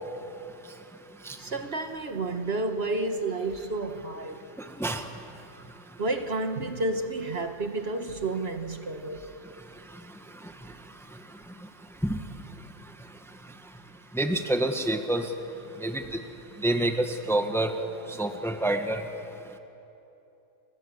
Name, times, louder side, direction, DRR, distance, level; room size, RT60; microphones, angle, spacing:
voice 1, 1.4-4.5 6.0-9.3, right 2 dB, 50° right, 1.5 m, -30 dB
voice 2, 4.8-5.1 12.0-12.2 14.1-15.3 15.8-16.2 16.6-17.7 18.1-19.0, right 1 dB, ahead, 1.3 m, -27 dB
30.0 x 23.0 x 8.1 m
omnidirectional pair, 1.4 m